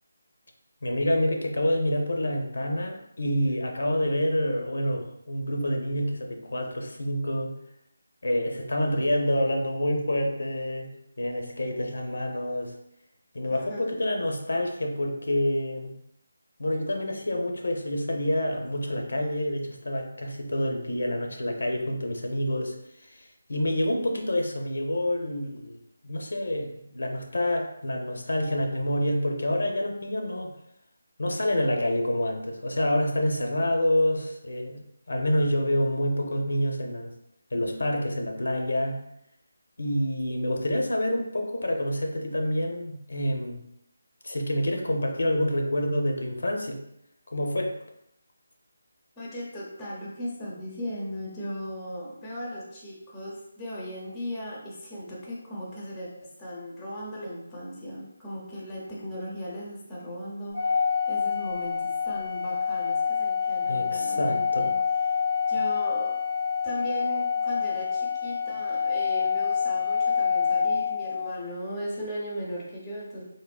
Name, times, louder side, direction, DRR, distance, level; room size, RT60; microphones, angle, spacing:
voice 1, 0.8-7.5 8.2-10.9 11.2-12.8 13.3-15.9 16.6-22.7 23.0-25.8 26.0-30.5 31.2-37.1 37.5-39.0 39.8-43.6 44.2-46.8 47.3-47.8 63.7-64.7, left 1 dB, 85° left, 2 dB, 0.5 m, -27 dB
voice 2, 13.5-13.8 49.2-64.7 65.5-66.2 66.6-73.2, equal, 10° left, -5 dB, 0.5 m, -37 dB
Organ, 60.5-71.4, left 6 dB, 65° right, 0.7 m, -27 dB
3.3 x 2.0 x 2.3 m, 0.78 s
figure-of-eight pair, 170°, 0 cm